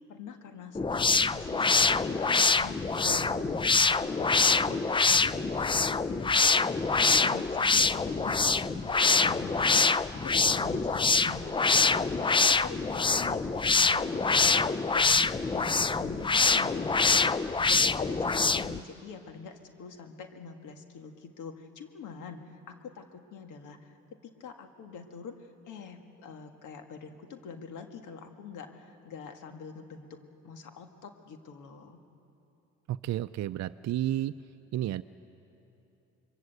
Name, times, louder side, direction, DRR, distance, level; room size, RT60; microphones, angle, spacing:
voice 1, 0.1-24.0 24.2-30.2 30.4-32.0, left 5 dB, 85° left, 5 dB, 2.0 m, -45 dB
sound 1, 0.7-18.8, left 4 dB, 15° left, 0.5 m, -25 dB
voice 2, 32.9-34.4 34.7-35.0, right 13 dB, 65° right, 9 dB, 0.5 m, -31 dB
26.5 x 22.5 x 8.0 m, 2.9 s
cardioid pair, 90°, 30 cm